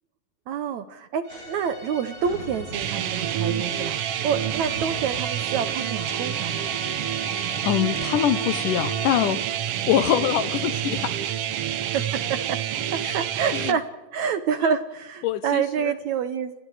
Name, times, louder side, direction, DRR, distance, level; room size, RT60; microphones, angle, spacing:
voice 1, 0.5-6.7 11.9-12.6 12.9-16.5, right 7 dB, 70° right, 1.9 m, -28 dB
sound 1, 1.2-9.7, left 2 dB, 20° left, 8.3 m, -40 dB
sound 2, 1.3-5.4 5.8-6.4, equal, 20° right, 6.9 m, -43 dB
sound 3, 2.7-13.7, right 10 dB, 90° right, 1.3 m, -28 dB
voice 2, 7.6-9.4 9.9-11.2 11.9-12.0 13.0-13.1 13.5-13.8 14.6-14.7 15.2-15.9, left 11 dB, 75° left, 2.3 m, -24 dB
30.0 x 26.0 x 4.9 m
omnidirectional pair, 4.1 m